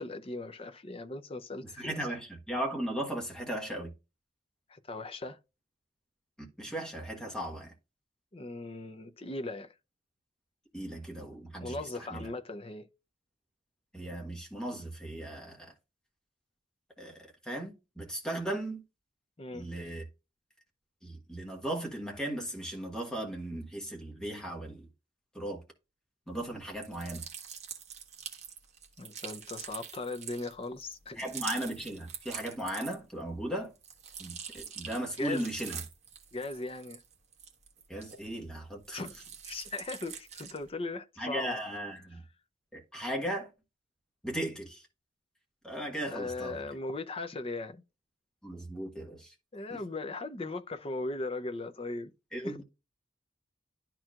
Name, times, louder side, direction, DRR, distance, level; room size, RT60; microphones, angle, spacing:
voice 1, 0.0-2.0 4.7-5.4 8.3-9.7 11.6-12.9 19.4-19.7 29.0-31.2 35.2-35.5 36.3-37.0 38.9-39.2 39.4-41.6 46.1-47.8 49.5-52.1 52.4-52.6, left 2 dB, 30° left, 0.6 m, -38 dB
voice 2, 1.8-3.9 6.4-7.7 10.7-12.3 13.9-15.7 17.0-18.8 19.5-20.0 21.0-24.9 25.3-25.6 26.3-27.2 31.2-33.7 34.2-35.8 37.9-39.0 41.2-42.2 42.7-43.5 44.2-44.9 45.6-46.6 48.4-49.3 49.7-49.8 52.3-52.6, right 1 dB, 5° left, 1.5 m, -37 dB
sound 1, 26.7-33.2 33.6-38.5 38.8-40.7, right 7 dB, 35° right, 1.4 m, -45 dB
12.0 x 4.5 x 2.5 m
head